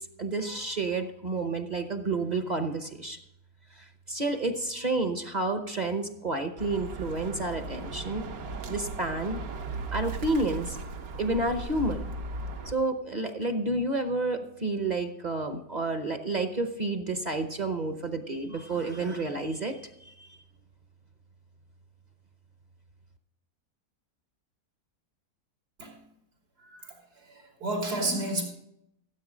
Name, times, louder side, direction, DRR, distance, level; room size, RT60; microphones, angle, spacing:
voice 1, 0.2-3.2 3.7-9.4 9.9-10.8 11.2-12.0 12.7-20.4, right 2 dB, 35° right, 7 dB, 0.8 m, -30 dB
Bird, 6.6-12.7, right 3 dB, 70° right, 1.4 m, -37 dB
voice 2, 26.6-26.9 27.3-28.4, right 2 dB, 85° right, 0 dB, 3.5 m, -31 dB
15.0 x 8.0 x 5.0 m, 0.78 s
omnidirectional pair, 1.6 m